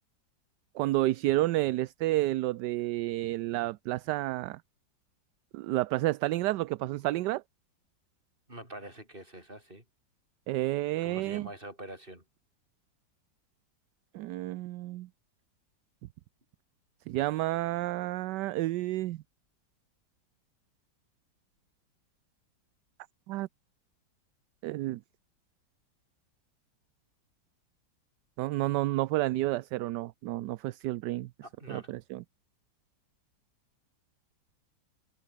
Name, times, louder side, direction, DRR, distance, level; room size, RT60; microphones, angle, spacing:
voice 1, 0.7-4.6 5.5-7.4 10.5-11.5 14.1-15.1 17.1-19.2 23.3-23.5 24.6-25.0 28.4-31.3 31.7-32.2, right 17 dB, 75° right, 1.1 m, -30 dB
voice 2, 8.5-9.8 11.0-12.2 31.4-31.9, right 1 dB, 25° right, 7.7 m, -45 dB
omnidirectional pair, 2.1 m